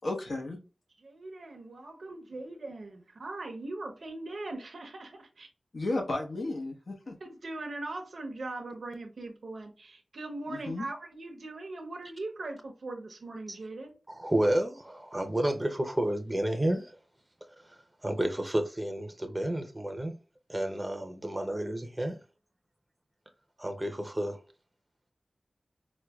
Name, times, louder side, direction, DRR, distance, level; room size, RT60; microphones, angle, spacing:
voice 1, 0.0-0.6 5.7-7.1 10.5-10.9, left 2 dB, 75° left, 0.9 m, -33 dB
voice 2, 1.0-5.5 7.2-13.9, right 2 dB, 80° right, 0.6 m, -40 dB
voice 3, 14.1-16.9 17.7-20.2 20.5-22.2 23.6-24.4, right 1 dB, 20° right, 0.5 m, -31 dB
4.3 x 2.2 x 2.2 m
wide cardioid pair, 65°, 0 cm